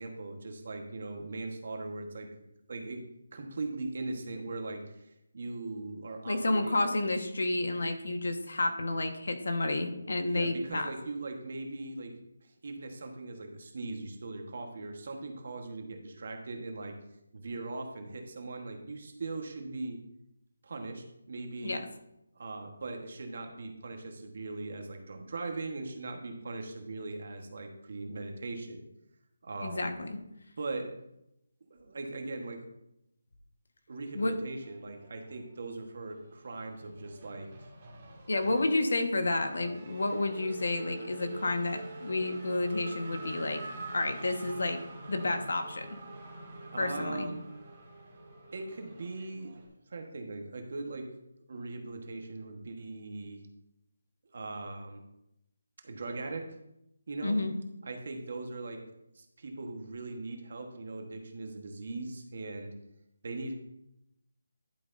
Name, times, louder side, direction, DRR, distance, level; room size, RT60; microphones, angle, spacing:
voice 1, 0.0-2.3 2.7-3.0 3.3-4.9 5.3-6.9 10.2-12.1 12.6-17.0 17.3-20.0 20.6-21.8 22.3-28.8 29.4-29.9 30.6-30.9 31.7-32.6 33.9-37.5 46.7-47.4 48.5-49.6 49.9-51.1 51.5-53.4 54.3-55.0 55.8-56.4 57.1-57.4 57.8-58.8 59.1-62.7 63.2-63.5, right 3 dB, 40° right, 4 dB, 1.3 m, -40 dB
voice 2, 6.3-10.9 21.6-21.8 29.6-30.2 34.1-34.4 38.3-43.6 43.9-44.8 45.1-45.8 46.8-47.3 57.2-57.5, left 2 dB, 65° left, 6 dB, 1.4 m, -30 dB
Race car auto racing / Accelerating revving vroom, 34.7-35.7 36.0-49.7, right 2 dB, 20° right, 1.9 m, -46 dB
11.0 x 9.5 x 2.7 m, 0.85 s
hypercardioid pair, 180°, 0 cm